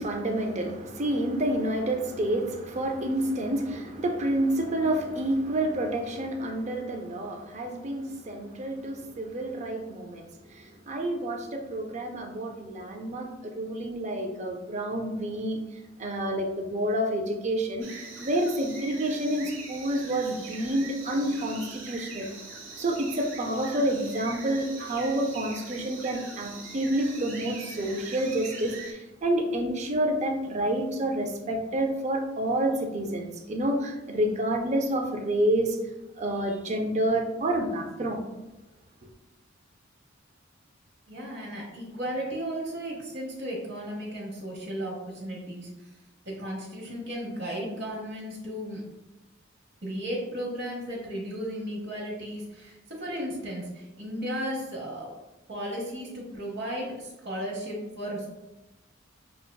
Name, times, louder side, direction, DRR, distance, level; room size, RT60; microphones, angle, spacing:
voice 1, 0.0-15.6 16.0-22.3 22.8-35.8 36.2-38.3, right 1 dB, 35° right, 4 dB, 0.5 m, -29 dB
sound 1, 17.8-28.9, right 3 dB, 80° right, 1.2 m, -42 dB
voice 2, 41.1-45.7 46.2-48.8 49.8-55.1 55.5-58.3, equal, 60° right, -3 dB, 0.9 m, -35 dB
6.3 x 2.2 x 2.2 m, 1.0 s
head